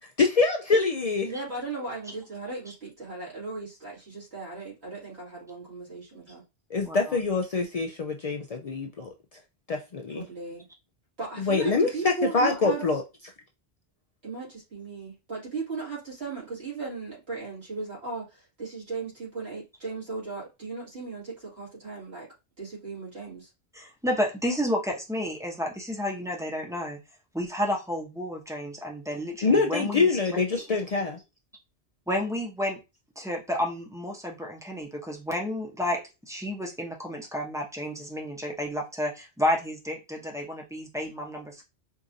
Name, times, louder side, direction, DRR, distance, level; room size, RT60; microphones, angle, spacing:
voice 1, 0.2-1.3 6.7-9.1 9.7-10.2 11.4-13.0 29.4-31.2, left 4 dB, 55° left, 0.4 m, -25 dB
voice 2, 1.2-6.4 10.1-10.7 11.2-12.8 14.2-22.3 22.6-23.5, right 4 dB, 80° right, 2.5 m, -37 dB
voice 3, 6.8-7.2 23.7-27.0 27.3-30.1 30.6-30.7 32.1-32.8 33.2-41.6, equal, 5° right, 0.8 m, -31 dB
4.6 x 2.5 x 2.7 m
omnidirectional pair, 1.1 m